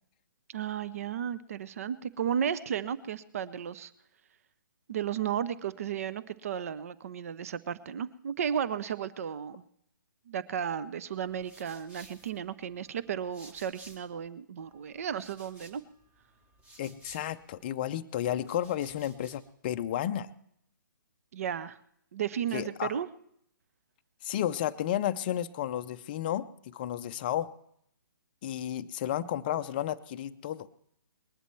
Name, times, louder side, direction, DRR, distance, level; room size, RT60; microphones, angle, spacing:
voice 1, 0.5-3.9 4.9-9.6 10.3-15.8 21.3-21.8 22.1-23.1, right 8 dB, 45° right, 16 dB, 0.6 m, -34 dB
sound 1, 11.1-14.3 14.6-17.7 18.3-19.5, right 1 dB, 10° right, 1.1 m, -56 dB
voice 2, 16.8-20.3 22.5-22.9 24.2-27.5 28.4-30.7, left 11 dB, 25° left, 11 dB, 0.5 m, -32 dB
20.0 x 11.0 x 4.5 m, 0.71 s
figure-of-eight pair, 130°, 11 cm